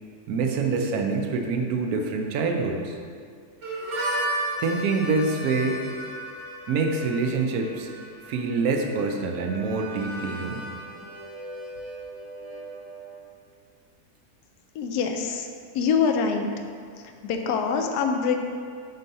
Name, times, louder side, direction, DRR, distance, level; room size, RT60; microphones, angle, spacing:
voice 1, 0.3-3.0 4.6-5.8 6.7-7.9 8.2-10.7, right 4 dB, 75° right, 3 dB, 1.0 m, -26 dB
Harmonica, 3.6-13.2, right 1 dB, 55° right, 1.5 m, -35 dB
voice 2, 14.7-15.5 15.7-16.5 17.0-18.3, left 6 dB, 80° left, 4 dB, 1.1 m, -25 dB
4.5 x 4.1 x 5.3 m, 2.2 s
omnidirectional pair, 1.7 m